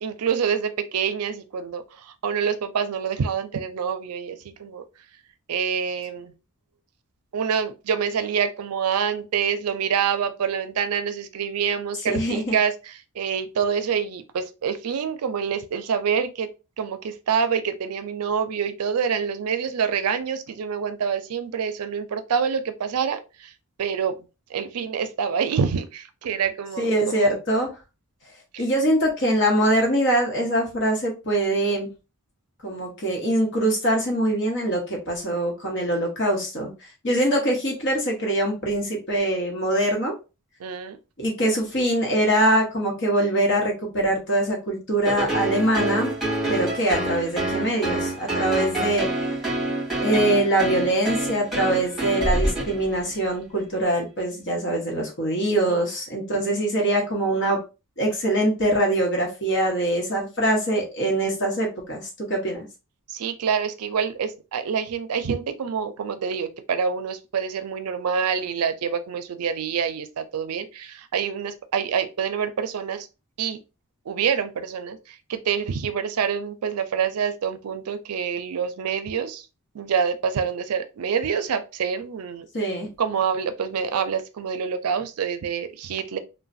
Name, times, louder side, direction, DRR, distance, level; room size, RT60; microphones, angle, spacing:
voice 1, 0.0-1.8 2.2-4.8 5.5-6.3 7.3-16.5 16.8-23.5 23.8-24.1 24.5-27.4 40.6-41.0 55.7-55.8 63.1-73.1 73.4-73.6 74.1-75.0 75.3-79.4 79.7-82.5 83.0-86.2, right 7 dB, 80° right, 0.4 m, -26 dB
voice 2, 12.0-12.6 26.8-27.7 28.6-31.9 32.6-36.7 37.0-40.1 41.2-46.1 46.5-49.1 50.0-57.6 58.0-62.6 82.5-82.9, right 1 dB, 55° left, 1.0 m, -23 dB
sound 1, 45.0-53.2, right 1 dB, ahead, 1.6 m, -27 dB
3.1 x 2.2 x 2.5 m
head